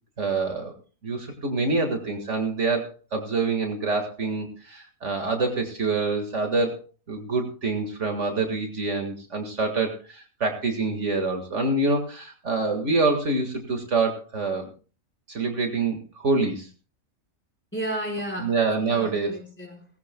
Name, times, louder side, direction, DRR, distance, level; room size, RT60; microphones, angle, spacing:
voice 1, 0.2-0.7 1.0-6.8 7.1-14.7 15.3-16.7 18.4-19.4, right 3 dB, 60° right, 2.1 m, -26 dB
voice 2, 17.7-19.9, right 1 dB, 10° left, 4.6 m, -33 dB
18.5 x 16.5 x 2.2 m
omnidirectional pair, 1.4 m